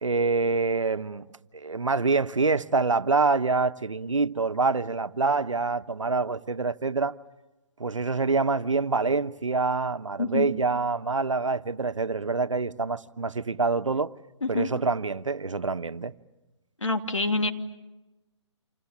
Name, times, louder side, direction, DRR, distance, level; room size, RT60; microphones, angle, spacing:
voice 1, 0.0-1.3 1.5-7.1 7.8-14.1 14.5-16.1, right 4 dB, 90° right, 1.1 m, -26 dB
voice 2, 14.4-14.7 16.8-17.5, left 3 dB, 90° left, 2.8 m, -26 dB
29.0 x 27.5 x 7.3 m
figure-of-eight pair, 145°, 16 cm